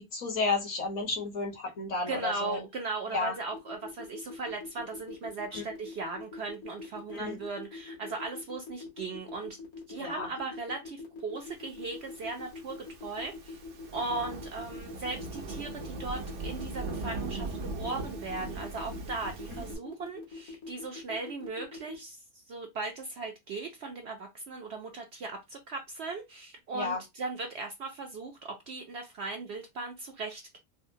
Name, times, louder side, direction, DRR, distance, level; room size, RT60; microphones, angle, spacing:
voice 1, 0.1-2.6 3.1-3.3 5.5-5.6 7.1-7.4 10.0-10.3 19.5-19.6 26.7-27.0, left 3 dB, 60° left, 1.5 m, -32 dB
voice 2, 2.1-9.6 9.9-13.6 13.9-30.6, right 3 dB, 60° right, 0.7 m, -38 dB
sound 1, 3.5-21.9, left 3 dB, 90° left, 1.8 m, -43 dB
Thunderstorm / Rain, 12.0-19.7, right 3 dB, 85° right, 1.3 m, -40 dB
4.8 x 2.1 x 2.6 m
omnidirectional pair, 1.5 m